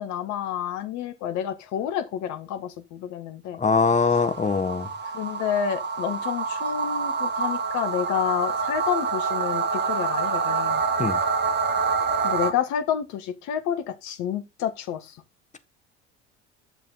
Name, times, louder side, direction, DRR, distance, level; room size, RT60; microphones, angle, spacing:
voice 1, 0.0-3.6 5.0-10.8 12.2-15.2, left 9 dB, 55° left, 1.7 m, -29 dB
voice 2, 3.6-4.9 11.0-11.2, left 4 dB, 20° left, 1.5 m, -22 dB
sound 1, 3.8-12.5, right 5 dB, 30° right, 2.4 m, -27 dB
10.5 x 6.8 x 4.1 m
figure-of-eight pair, 65°, 34 cm